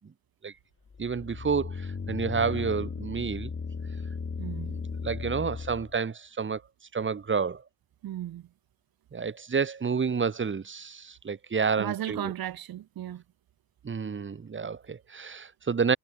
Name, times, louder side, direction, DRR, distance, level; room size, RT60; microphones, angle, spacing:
sound 1, 0.9-6.0, left 5 dB, 30° left, 5.0 m, -36 dB
voice 1, 1.0-3.5 4.7-6.6 6.9-7.6 9.1-12.3 13.8-16.0, right 5 dB, 30° right, 1.6 m, -29 dB
voice 2, 4.4-4.8 8.0-8.4 11.8-13.2, right 12 dB, 60° right, 1.6 m, -35 dB
supercardioid pair, 80°, 40 cm